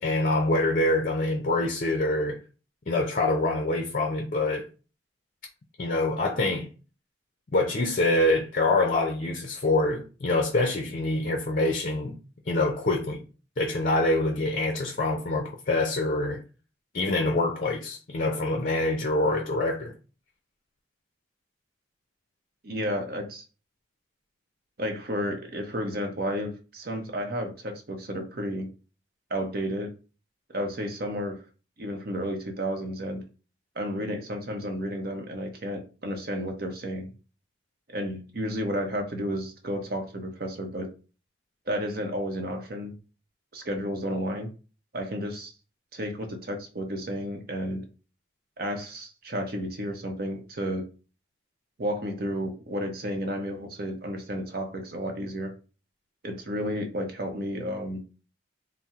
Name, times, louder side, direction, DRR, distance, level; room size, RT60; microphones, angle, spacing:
voice 1, 0.0-2.4 2.9-4.7 5.8-6.7 7.5-12.2 12.5-13.2 13.6-16.4 16.9-19.9, left 2 dB, 45° left, 0.5 m, -25 dB
voice 2, 22.6-23.4 24.8-28.7 29.3-29.9 30.5-31.4 31.8-33.2 33.8-37.1 37.9-40.9 41.7-42.9 43.5-44.5 44.9-45.5 45.9-47.8 48.6-50.9 51.8-55.5 56.2-58.0, equal, 50° right, 0.7 m, -32 dB
4.2 x 2.0 x 3.5 m
head